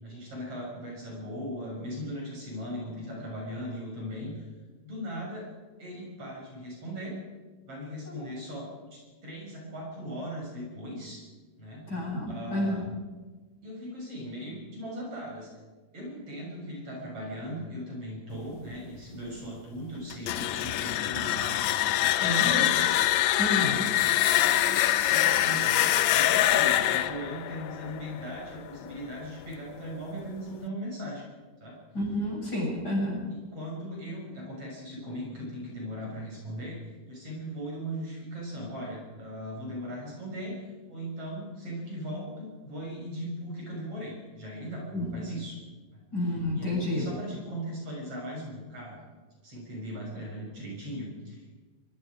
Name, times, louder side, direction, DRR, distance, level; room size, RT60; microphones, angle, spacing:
voice 1, 0.0-4.5 4.8-5.5 5.8-7.2 7.7-11.2 11.6-11.9 12.3-12.8 13.6-15.5 15.9-31.2 31.6-31.8 33.5-45.6 45.9-46.0 46.6-49.1 49.4-51.5, equal, 40° right, -3 dB, 7.4 m, -39 dB
voice 2, 11.9-12.8 22.2-22.6 23.4-23.8 31.9-33.2 44.9-45.1 46.1-47.1, left 1 dB, 25° left, -3 dB, 7.8 m, -30 dB
sound 1, 20.1-28.9, left 13 dB, 75° left, 1.7 m, -25 dB
23.5 x 23.5 x 5.1 m, 1.3 s
omnidirectional pair, 4.0 m